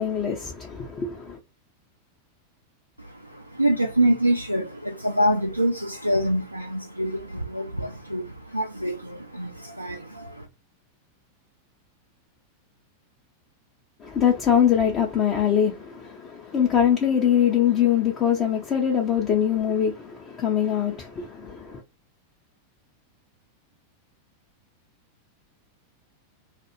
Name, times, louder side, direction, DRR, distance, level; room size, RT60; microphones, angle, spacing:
voice 1, 0.0-1.4 14.0-21.8, left 9 dB, 30° left, 0.6 m, -23 dB
voice 2, 3.0-10.5, right 1 dB, 85° right, 0.3 m, -25 dB
2.4 x 2.3 x 2.9 m
figure-of-eight pair, 90°, 0 cm